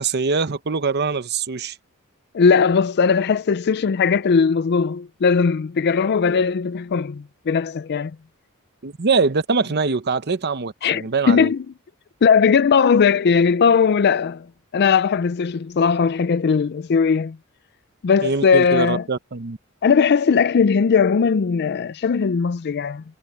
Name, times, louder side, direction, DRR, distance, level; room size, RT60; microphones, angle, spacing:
voice 1, 0.0-1.7 8.8-11.5 18.2-19.6, right 4 dB, 50° right, 0.9 m, -23 dB
voice 2, 2.3-8.1 10.8-11.6 12.2-14.5 14.7-17.4 18.0-19.0 19.8-23.0, left 5 dB, 50° left, 0.4 m, -18 dB
head